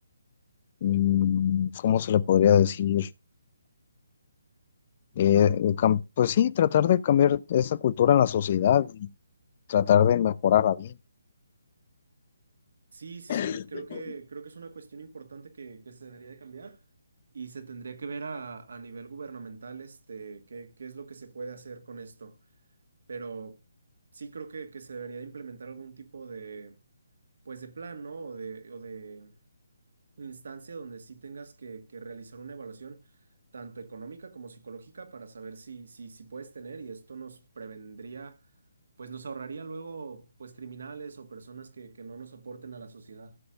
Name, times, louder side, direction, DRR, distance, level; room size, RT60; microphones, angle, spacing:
voice 1, 0.8-3.1 5.2-9.1 9.7-10.9 13.3-13.6 13.9-14.0, left 10 dB, 40° left, 0.4 m, -22 dB
voice 2, 12.9-16.8 17.3-22.4 23.1-23.6 24.1-26.8 27.4-29.3 30.2-33.0 33.5-38.4 39.0-43.4, right 4 dB, 70° right, 1.7 m, -42 dB
16.0 x 7.0 x 2.5 m
hypercardioid pair, 155°, 0 cm